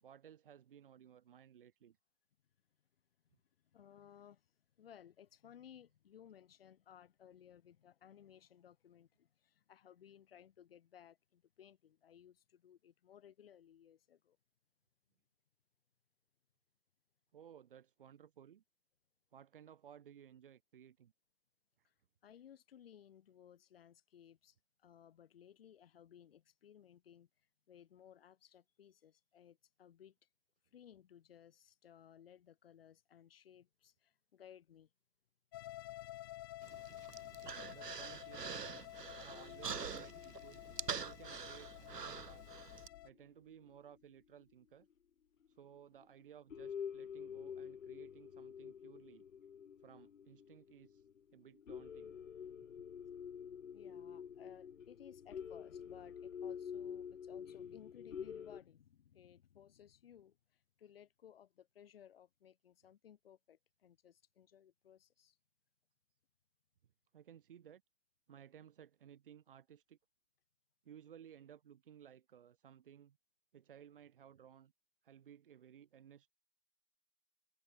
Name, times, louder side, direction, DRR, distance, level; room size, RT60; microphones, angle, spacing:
voice 1, 0.0-2.0 17.3-18.6 19.3-21.1 21.8-21.9 37.7-38.9 39.2-40.7 41.0-42.4 43.0-44.9 45.5-49.2 49.8-51.1 51.3-52.1 67.1-67.8 68.3-70.0 70.8-73.2 73.5-74.7 75.0-76.3, right 9 dB, 35° right, 2.3 m, -59 dB
voice 2, 3.6-14.4 21.8-21.9 22.2-30.3 30.7-34.9 53.7-65.4, left 9 dB, 35° left, 7.8 m, -60 dB
sound 1, 35.5-43.1, left 15 dB, 15° left, 1.2 m, -51 dB
Human voice, 36.6-42.9, right 6 dB, 80° right, 1.1 m, -45 dB
sound 2, 39.3-43.2 43.7-43.8 44.8-44.9 45.4-45.5 46.0-46.2 46.5-58.6, left 7 dB, 55° left, 0.7 m, -48 dB
figure-of-eight pair, 150°, 47 cm